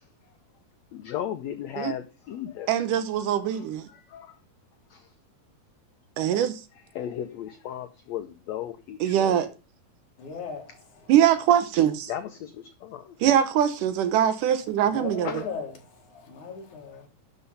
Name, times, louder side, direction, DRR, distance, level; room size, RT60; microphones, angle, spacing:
voice 1, 0.9-2.8 3.5-4.4 4.9-5.1 6.8-9.4 12.1-13.2 15.2-15.5, left 10 dB, 80° left, 1.6 m, -36 dB
voice 2, 2.7-3.9 6.2-6.6 9.0-9.5 11.1-12.1 13.2-15.3, right 10 dB, 75° right, 2.3 m, -22 dB
voice 3, 10.2-11.1 14.8-17.1, left 5 dB, 60° left, 3.4 m, -38 dB
11.5 x 5.5 x 5.5 m
omnidirectional pair, 4.1 m